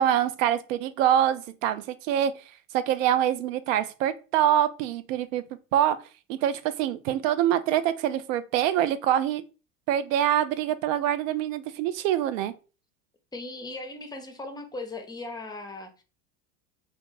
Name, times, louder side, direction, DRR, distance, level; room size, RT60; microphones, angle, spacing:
voice 1, 0.0-2.3 2.7-5.4 5.7-6.0 6.3-9.4 9.9-12.5, right 11 dB, 75° right, 0.5 m, -25 dB
voice 2, 13.3-16.0, left 2 dB, 10° left, 0.5 m, -38 dB
2.7 x 2.1 x 3.1 m
hypercardioid pair, 90°, 39 cm